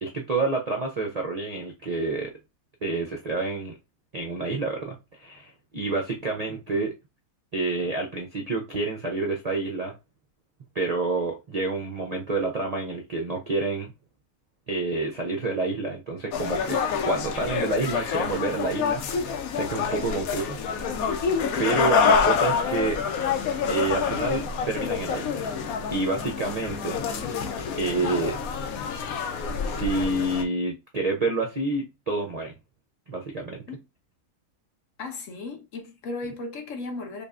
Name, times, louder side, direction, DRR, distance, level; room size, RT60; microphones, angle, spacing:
voice 1, 0.0-2.3 2.8-3.8 4.1-6.9 7.5-9.9 10.7-13.9 14.7-20.6 21.6-23.0 23.7-25.4 25.9-27.0 27.7-28.4 29.6-32.5 33.1-33.6, right 3 dB, 50° right, 0.4 m, -28 dB
sound 1, 16.3-30.4, left 6 dB, 85° left, 1.1 m, -27 dB
voice 2, 19.8-20.2 33.7-33.8 35.0-37.2, left 3 dB, 65° left, 1.2 m, -36 dB
5.1 x 2.4 x 2.4 m
omnidirectional pair, 1.5 m